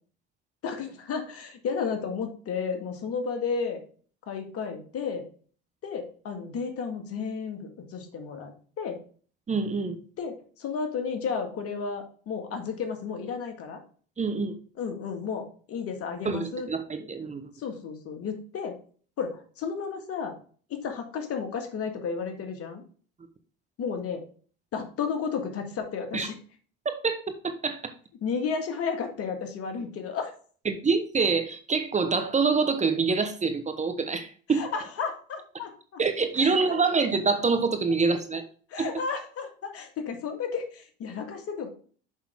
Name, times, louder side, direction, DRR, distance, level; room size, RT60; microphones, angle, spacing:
voice 1, 0.6-3.8 4.3-5.3 5.8-9.0 10.2-13.8 14.8-16.7 17.0-17.1 17.6-18.8 19.2-20.4 20.7-22.8 23.8-24.2 24.7-26.4 28.2-30.3 34.5-36.0 36.4-36.8 38.7-41.7, left 5 dB, 50° left, 5 dB, 1.9 m, -33 dB
voice 2, 9.5-10.0 14.2-14.5 16.2-17.5 26.1-26.3 27.0-27.2 27.4-27.9 30.6-34.7 36.0-38.4 38.8-38.9, right 4 dB, 25° right, 8 dB, 1.0 m, -26 dB
6.4 x 5.5 x 3.6 m, 0.42 s
supercardioid pair, 85°, 29 cm